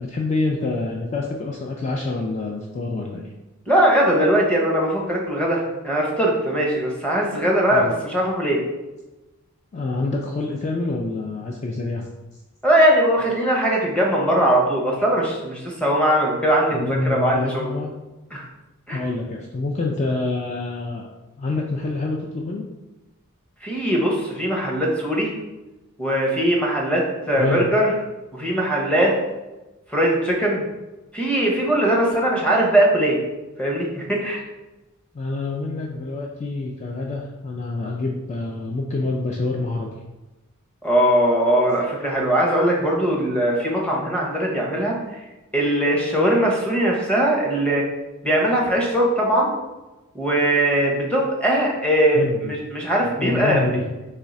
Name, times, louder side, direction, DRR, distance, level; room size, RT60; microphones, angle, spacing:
voice 1, 0.0-3.3 7.7-8.0 9.7-12.1 16.7-17.9 18.9-21.1 21.4-22.6 27.4-27.7 35.1-39.9 52.1-52.6 53.2-53.8, left 3 dB, 30° left, 0 dB, 0.4 m, -26 dB
voice 2, 3.7-8.6 12.6-17.8 18.3-18.5 18.9-19.0 23.6-25.3 26.0-27.9 28.3-29.1 29.9-30.7 31.1-33.2 33.6-34.4 40.8-45.0 45.5-47.8 48.2-49.5 50.1-53.7, right 1 dB, 5° left, -2 dB, 0.8 m, -20 dB
3.6 x 3.2 x 4.1 m, 1.1 s
head